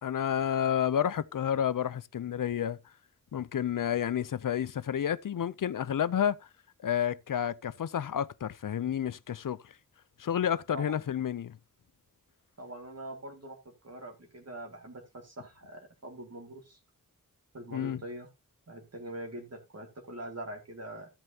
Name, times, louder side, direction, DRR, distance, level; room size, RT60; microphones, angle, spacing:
voice 1, 0.0-2.8 3.3-6.5 6.8-9.7 10.2-11.6 17.7-18.0, left 9 dB, 70° left, 0.5 m, -30 dB
voice 2, 12.6-16.8 17.5-18.3 18.7-21.1, right 1 dB, 50° right, 2.0 m, -43 dB
13.0 x 7.7 x 2.8 m
wide cardioid pair, 80°, 34 cm